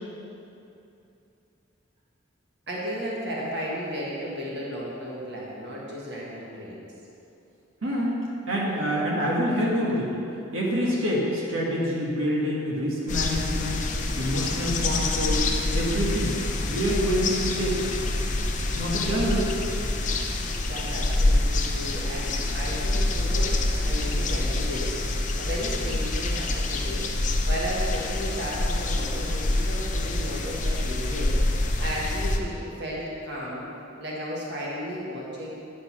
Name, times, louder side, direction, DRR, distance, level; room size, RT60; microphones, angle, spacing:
voice 1, 2.7-6.8 20.0-20.1 20.7-33.7 34.0-35.5, equal, 55° right, -5 dB, 1.6 m, -34 dB
voice 2, 7.8-8.1 8.5-10.1 10.5-13.8 14.2-15.5 15.7-16.3 16.7-17.7 18.7-19.5, equal, 80° right, -5 dB, 1.5 m, -26 dB
sound 1, 13.1-32.4, left 2 dB, 40° left, 0.6 m, -26 dB
10.0 x 5.2 x 6.0 m, 2.8 s
head